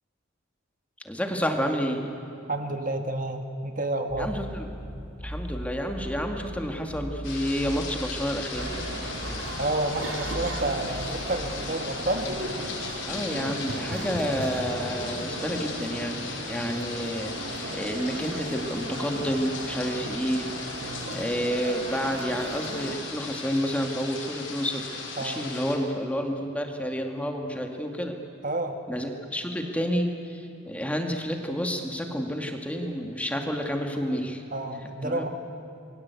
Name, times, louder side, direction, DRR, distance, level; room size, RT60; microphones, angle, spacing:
voice 1, 1.0-2.1 4.2-4.7 5.2-8.7 13.1-20.5 20.8-24.9 25.2-28.1 28.9-34.4 35.0-35.3, equal, 5° left, 3 dB, 2.1 m, -30 dB
voice 2, 2.5-4.3 9.6-12.3 16.5-16.7 20.8-21.2 25.2-25.5 28.4-28.8 34.5-35.3, right 2 dB, 40° right, 5 dB, 1.7 m, -30 dB
sound 1, 4.1-12.6, equal, 35° left, 3.2 m, -39 dB
sound 2, 7.2-25.8, left 4 dB, 75° left, 5.6 m, -37 dB
sound 3, 8.5-22.9, right 1 dB, 75° right, 3.3 m, -36 dB
28.0 x 22.5 x 8.4 m, 3.0 s
head